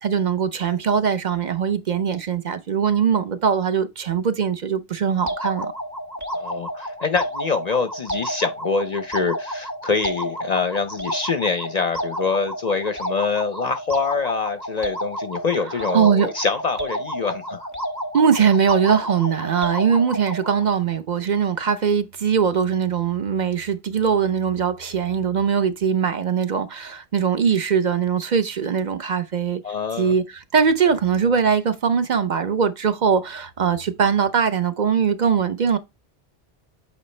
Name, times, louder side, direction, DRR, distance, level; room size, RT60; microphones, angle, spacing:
voice 1, 0.0-5.7 15.7-16.3 18.1-29.6 30.0-35.8, right 7 dB, 45° right, 0.8 m, -21 dB
sound 1, 5.3-20.6, equal, 15° right, 0.9 m, -31 dB
voice 2, 6.3-17.7 29.6-30.1, left 5 dB, 50° left, 0.5 m, -25 dB
8.4 x 4.5 x 3.2 m
omnidirectional pair, 1.1 m